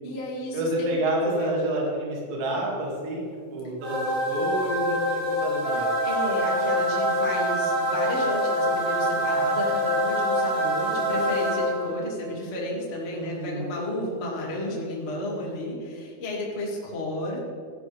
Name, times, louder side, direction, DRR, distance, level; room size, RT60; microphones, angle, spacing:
voice 1, 0.0-0.9 1.2-1.5 6.0-17.5, left 1 dB, 65° left, -4 dB, 0.6 m, -32 dB
voice 2, 0.5-5.9 13.2-13.7, right 1 dB, 65° right, -4 dB, 4.5 m, -29 dB
sound 1, 3.8-12.1, equal, 80° right, 5.9 m, -25 dB
15.0 x 11.0 x 3.5 m, 2.3 s
omnidirectional pair, 5.7 m